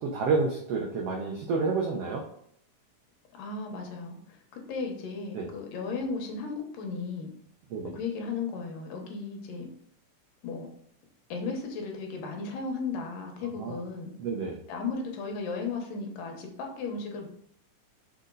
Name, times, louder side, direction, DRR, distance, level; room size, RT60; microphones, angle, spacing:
voice 1, 0.0-2.2 5.3-5.5 7.7-7.9 13.6-13.8 14.2-14.6, right 4 dB, 80° right, 0 dB, 1.4 m, -29 dB
voice 2, 3.4-7.3 7.9-9.7 10.4-10.7 11.3-14.1 14.7-17.3, left 4 dB, 80° left, 2 dB, 2.7 m, -35 dB
6.5 x 4.3 x 3.9 m, 0.68 s
omnidirectional pair, 3.9 m